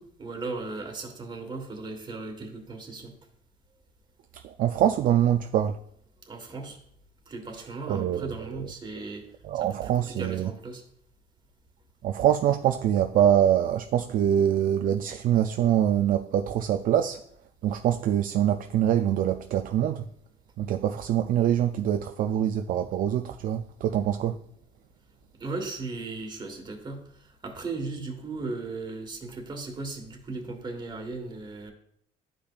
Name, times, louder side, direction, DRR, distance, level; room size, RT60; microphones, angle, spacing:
voice 1, 0.0-3.1 6.3-6.8 7.3-9.2 9.5-10.8 25.4-27.0 27.4-31.7, right 3 dB, 25° right, 1.5 m, -37 dB
voice 2, 4.3-5.8 7.9-8.5 9.4-10.5 12.0-17.2 17.6-20.1 20.6-24.4, right 10 dB, 55° right, 0.4 m, -24 dB
12.0 x 5.1 x 2.4 m
cardioid pair, 110°, 17 cm